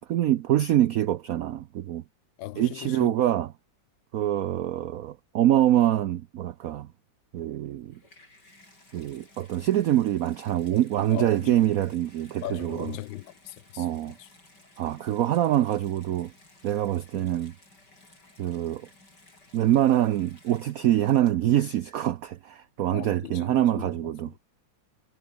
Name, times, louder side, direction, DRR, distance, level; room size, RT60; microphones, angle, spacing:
voice 1, 0.1-2.0 2.6-3.5 4.1-6.9 7.3-8.0 8.9-12.9 13.8-14.2 14.8-16.3 16.6-17.5 18.4-18.9 19.5-24.4, right 12 dB, 70° right, 0.9 m, -25 dB
voice 2, 2.4-3.2 11.1-11.6 12.4-13.9 14.2-14.3 17.2-17.3 22.9-24.1, left 15 dB, 80° left, 1.4 m, -39 dB
Water tap faucet / Bathtub (filling or washing), 7.7-21.7 22.5-22.6, left 2 dB, 60° left, 8.9 m, -56 dB
omnidirectional pair, 2.1 m